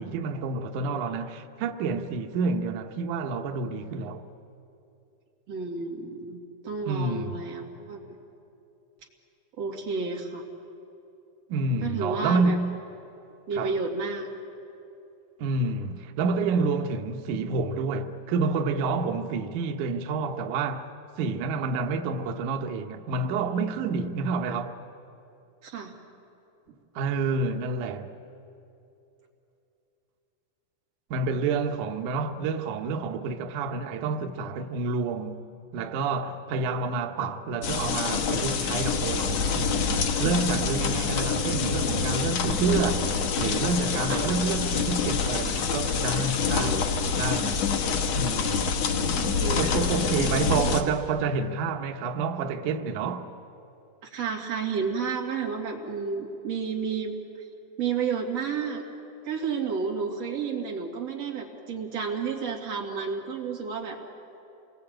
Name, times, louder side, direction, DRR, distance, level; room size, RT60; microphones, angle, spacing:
voice 1, 0.0-4.3 6.9-7.4 11.5-12.7 13.5-13.8 15.4-20.9 21.2-24.8 27.0-28.1 31.1-35.4 35.7-43.0 43.4-46.9 47.1-47.7 48.1-48.7 49.6-53.3, right 4 dB, 85° right, 1.7 m, -28 dB
voice 2, 5.5-6.4 6.6-8.0 9.6-10.4 11.8-12.6 13.5-14.3 25.6-25.9 44.1-44.2 46.6-47.0 49.3-50.1 54.0-57.1 57.8-58.8 59.2-64.0, right 5 dB, 40° right, 3.0 m, -31 dB
sound 1, 37.6-50.8, left 5 dB, 70° left, 1.6 m, -26 dB
28.0 x 21.0 x 8.8 m
omnidirectional pair, 5.3 m